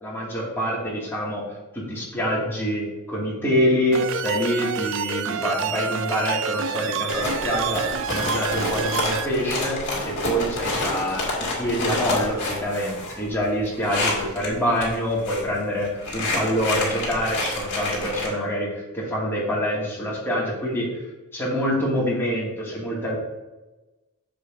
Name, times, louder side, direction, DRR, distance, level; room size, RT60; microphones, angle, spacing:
voice 1, 0.0-1.4 1.7-20.9 21.3-23.1, equal, 10° left, -6 dB, 2.4 m, -26 dB
sound 1, 3.9-9.3, right 7 dB, 60° right, 0.4 m, -28 dB
sound 2, 7.1-14.5 14.8-15.5 15.8-18.3, left 2 dB, 50° left, 2.3 m, -28 dB
9.9 x 6.9 x 2.7 m, 1.1 s
head